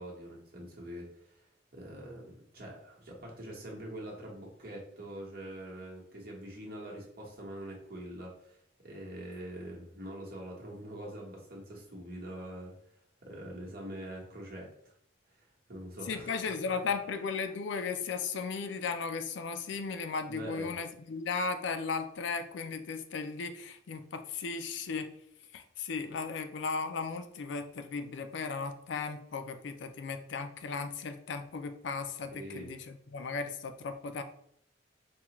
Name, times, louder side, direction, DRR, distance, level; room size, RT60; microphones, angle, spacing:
voice 1, 0.0-1.4 1.7-12.7 13.2-14.9 15.3-16.3 20.3-20.7 32.3-32.7, right 1 dB, 50° right, -2 dB, 1.1 m, -44 dB
voice 2, 16.1-25.1 25.5-34.2, left 5 dB, 70° left, 8 dB, 0.4 m, -36 dB
4.6 x 2.3 x 2.9 m, 0.71 s
head